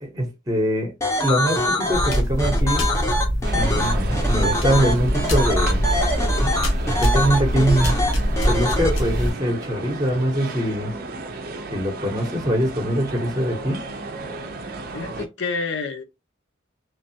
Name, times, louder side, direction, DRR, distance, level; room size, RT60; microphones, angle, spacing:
voice 1, 0.0-0.9 1.2-2.9 3.5-5.8 6.5-6.6 6.9-8.0 8.5-10.9 11.7-13.8, equal, 20° right, 0.8 m, -23 dB
sound 1, 1.0-8.9, left 1 dB, 15° left, 0.6 m, -24 dB
sound 2, 1.9-9.3, equal, 80° left, 1.1 m, -23 dB
sound 3, 3.4-15.3, right 3 dB, 50° right, 0.5 m, -34 dB
voice 2, 14.9-16.0, left 4 dB, 60° left, 0.6 m, -28 dB
3.1 x 2.3 x 2.7 m
head